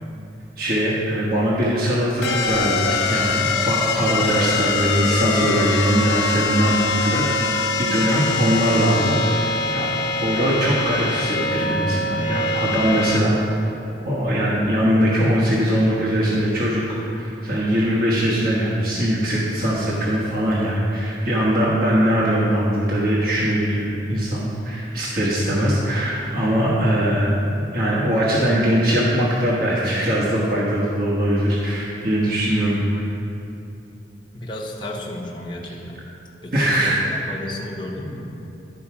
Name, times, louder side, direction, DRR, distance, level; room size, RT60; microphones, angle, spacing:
voice 1, 0.6-9.9 10.2-13.7 14.0-16.8 17.1-27.4 27.7-33.1 36.5-37.1, equal, 50° right, -6 dB, 1.2 m, -21 dB
sound 1, 2.2-13.2, left 3 dB, 80° left, 0.9 m, -23 dB
voice 2, 34.3-36.0 36.4-38.3, left 1 dB, 25° left, -2 dB, 0.8 m, -32 dB
11.5 x 4.7 x 5.8 m, 3.0 s
head